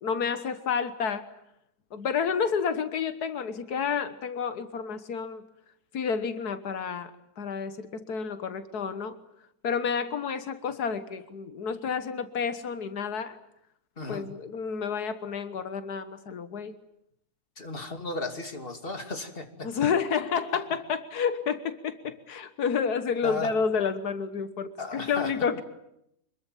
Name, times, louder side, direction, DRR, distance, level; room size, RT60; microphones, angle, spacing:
voice 1, 0.0-1.3 1.9-5.4 5.9-9.2 9.6-13.4 14.1-16.8 19.6-25.6, left 6 dB, 90° left, 11 dB, 1.8 m, -30 dB
voice 2, 14.0-14.3 17.6-19.7 20.5-20.6 23.2-23.5 24.8-25.4, left 3 dB, 35° left, 6 dB, 2.9 m, -35 dB
25.5 x 22.0 x 9.1 m, 0.77 s
omnidirectional pair, 1.6 m